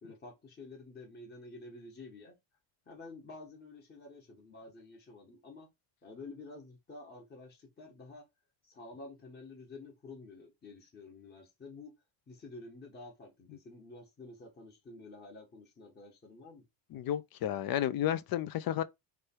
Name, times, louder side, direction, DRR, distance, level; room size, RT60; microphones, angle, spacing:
voice 1, 0.0-2.4 2.8-5.7 6.0-8.2 8.6-11.9 12.3-16.6, left 3 dB, 20° left, 1.3 m, -50 dB
voice 2, 16.9-18.8, left 11 dB, 50° left, 0.5 m, -32 dB
3.2 x 3.2 x 4.4 m
cardioid pair, 155°, 48 cm